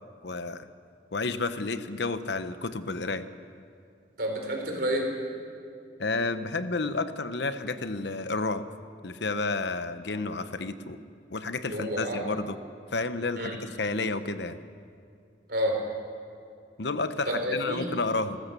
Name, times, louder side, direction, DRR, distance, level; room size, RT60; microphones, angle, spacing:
voice 1, 0.2-0.7 1.1-3.2 6.0-8.6 9.0-11.0 11.3-12.6 12.9-14.6 16.8-18.4, left 3 dB, 70° left, 11 dB, 0.9 m, -31 dB
voice 2, 4.2-5.1 11.7-12.2 13.3-13.6 15.5-15.8 17.3-17.9, equal, 60° right, 2 dB, 4.4 m, -29 dB
29.0 x 14.5 x 6.9 m, 2.4 s
head